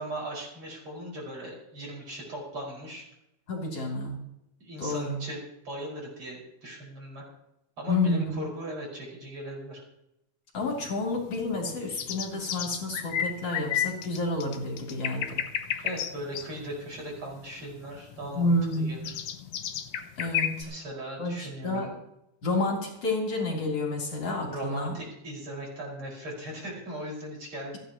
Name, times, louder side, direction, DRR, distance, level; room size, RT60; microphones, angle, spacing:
voice 1, 0.0-3.0 4.6-7.2 7.8-9.8 15.8-19.2 20.7-21.9 24.5-27.8, right 1 dB, 45° right, -2 dB, 5.9 m, -38 dB
voice 2, 3.5-4.2 4.8-5.2 7.9-8.4 10.5-15.4 15.8-15.9 18.4-19.0 20.2-20.7 21.2-21.9 22.4-25.0, left 2 dB, 55° left, -1 dB, 3.8 m, -29 dB
sound 1, 10.6-20.6, left 9 dB, 75° left, 2.2 m, -33 dB
28.5 x 10.5 x 2.9 m, 0.83 s
omnidirectional pair, 3.4 m